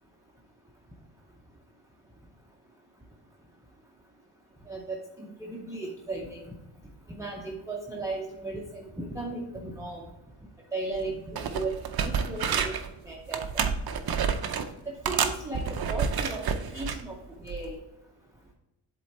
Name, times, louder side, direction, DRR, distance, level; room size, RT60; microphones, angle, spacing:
voice 1, 4.7-6.6 7.1-10.0 10.7-12.7 13.0-13.6 14.9-17.2 17.4-17.8, right 2 dB, 5° right, -1 dB, 0.6 m, -36 dB
sound 1, 10.9-11.1 11.3-12.9 13.3-14.7 15.0-17.0 17.5-17.7, right 6 dB, 50° right, 0.6 m, -29 dB
7.8 x 3.8 x 4.1 m, 0.95 s
wide cardioid pair, 165°, 50 cm